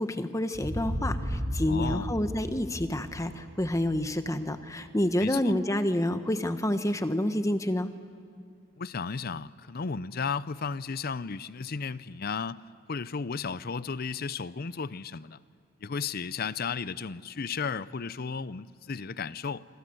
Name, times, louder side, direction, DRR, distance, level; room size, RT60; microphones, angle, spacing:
voice 1, 0.0-7.9, left 1 dB, 15° left, 1.1 m, -28 dB
sound 1, 0.5-5.1, equal, 40° right, 3.4 m, -35 dB
voice 2, 1.7-2.1 5.2-5.5 8.8-12.6 12.9-15.4 15.8-19.7, left 5 dB, 50° left, 0.6 m, -34 dB
26.5 x 24.5 x 7.9 m
head